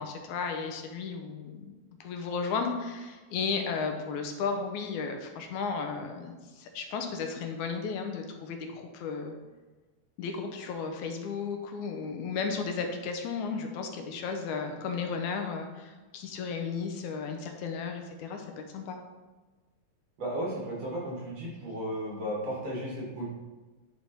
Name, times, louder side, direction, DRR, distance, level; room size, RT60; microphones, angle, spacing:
voice 1, 0.0-9.4 10.2-18.5 18.7-19.0, left 5 dB, 80° left, 4 dB, 2.1 m, -34 dB
voice 2, 20.2-23.3, right 1 dB, 55° right, -5 dB, 3.4 m, -34 dB
9.5 x 4.2 x 4.5 m, 1.2 s
omnidirectional pair, 3.5 m